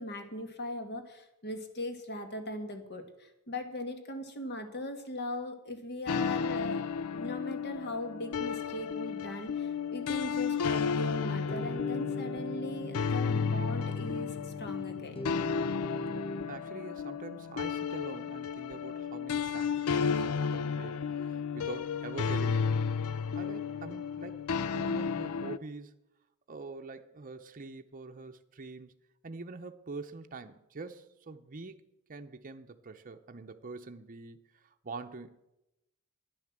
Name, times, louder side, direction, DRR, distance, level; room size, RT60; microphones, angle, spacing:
voice 1, 0.0-6.8 7.1-15.2, left 1 dB, 50° left, 1.7 m, -39 dB
sound 1, 6.1-25.6, left 6 dB, 75° left, 0.5 m, -33 dB
sound 2, 11.5-16.5, equal, 25° left, 1.0 m, -40 dB
voice 2, 16.0-23.0 23.4-26.0 26.5-28.9 29.2-31.8 32.1-34.4 34.8-35.4, right 3 dB, 40° right, 0.7 m, -45 dB
11.0 x 10.0 x 7.4 m
head